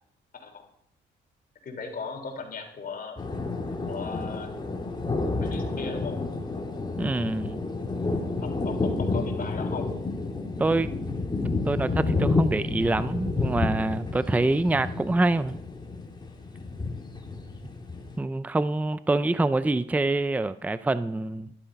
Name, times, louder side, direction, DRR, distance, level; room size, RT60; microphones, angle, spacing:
voice 1, 1.6-3.2 3.8-4.5 5.4-6.2 8.4-9.9, left 4 dB, 45° left, 2 dB, 3.7 m, -37 dB
sound 1, 3.2-18.2, left 3 dB, 20° left, 2.5 m, -30 dB
voice 2, 7.0-7.6 10.6-10.9 11.7-15.6 18.2-21.5, right 2 dB, 10° right, 14 dB, 0.5 m, -25 dB
12.5 x 11.5 x 5.3 m, 0.75 s
cardioid pair, 90°, 20 cm